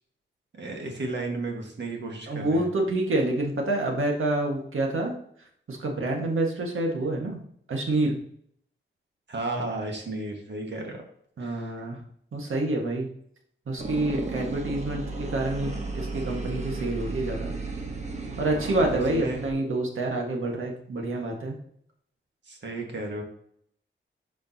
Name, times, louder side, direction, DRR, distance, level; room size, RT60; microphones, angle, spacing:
voice 1, 0.5-2.7 9.3-11.0 11.4-11.7 18.5-19.4 22.5-23.2, right 2 dB, 60° right, 2 dB, 1.7 m, -34 dB
voice 2, 2.3-5.1 5.7-7.4 7.7-8.1 11.4-12.0 12.3-13.1 13.7-17.5 18.4-21.5, right 2 dB, 90° right, 1 dB, 1.6 m, -27 dB
sound 1, 13.8-19.5, right 3 dB, 35° right, 1.1 m, -34 dB
10.5 x 5.1 x 2.9 m, 0.66 s
wide cardioid pair, 175°, 20 cm